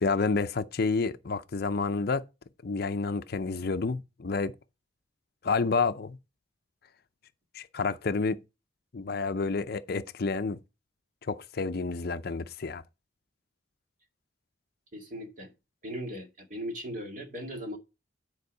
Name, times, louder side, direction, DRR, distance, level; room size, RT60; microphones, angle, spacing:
voice 1, 0.0-2.2 2.6-4.5 5.4-6.2 7.5-8.4 8.9-10.6 11.2-12.8, left 4 dB, 50° left, 0.5 m, -29 dB
voice 2, 14.9-15.5 15.8-17.8, equal, 40° right, 2.1 m, -38 dB
9.6 x 4.6 x 5.4 m
head